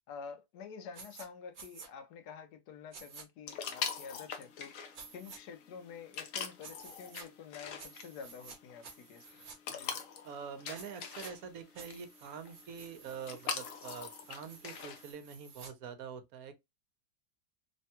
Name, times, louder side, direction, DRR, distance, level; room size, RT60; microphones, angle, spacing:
voice 1, 0.1-9.4 9.7-10.0, left 6 dB, 85° left, 1.2 m, -49 dB
sound 1, 0.9-1.3 1.5-1.9 2.9-3.3 4.9-5.4 6.6-7.3 7.8-8.6 8.8-9.6 10.7-11.3 11.8-15.7, right 4 dB, 50° right, 0.6 m, -52 dB
sound 2, 3.5-15.1, left 6 dB, 65° left, 1.0 m, -43 dB
voice 2, 10.2-16.5, right 6 dB, 70° right, 1.0 m, -45 dB
3.3 x 2.2 x 2.8 m
omnidirectional pair, 1.7 m